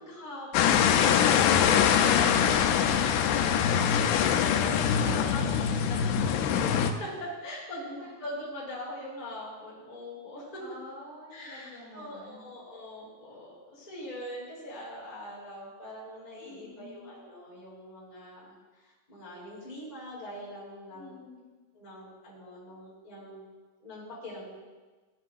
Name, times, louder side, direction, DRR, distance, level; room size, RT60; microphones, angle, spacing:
voice 1, 0.0-1.5 2.9-10.6 11.3-18.5 19.1-21.2 21.7-23.4 23.8-24.5, left 1 dB, 10° left, -8 dB, 2.7 m, -42 dB
sound 1, 0.5-6.9, left 8 dB, 85° left, 2.7 m, -23 dB
voice 2, 10.6-12.4 16.4-17.1 20.9-21.4, left 1 dB, 30° left, -9 dB, 2.9 m, -46 dB
14.5 x 7.5 x 2.5 m, 1.3 s
omnidirectional pair, 4.7 m